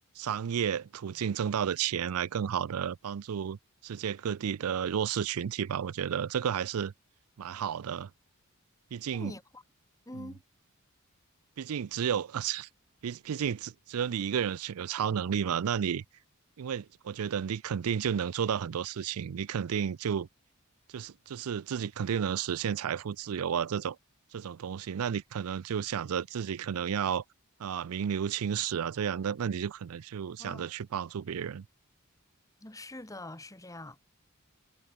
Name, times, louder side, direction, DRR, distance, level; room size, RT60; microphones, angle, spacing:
voice 1, 0.2-3.6 3.8-6.9 7.4-8.1 8.9-9.3 10.2-10.3 11.6-12.7 13.0-16.0 16.6-20.3 20.9-24.0 24.3-27.2 27.6-31.6, right 8 dB, 80° right, 0.4 m, -32 dB
voice 2, 9.1-9.6 10.1-10.4 30.4-30.7 32.6-34.0, left 1 dB, 15° left, 1.5 m, -44 dB
head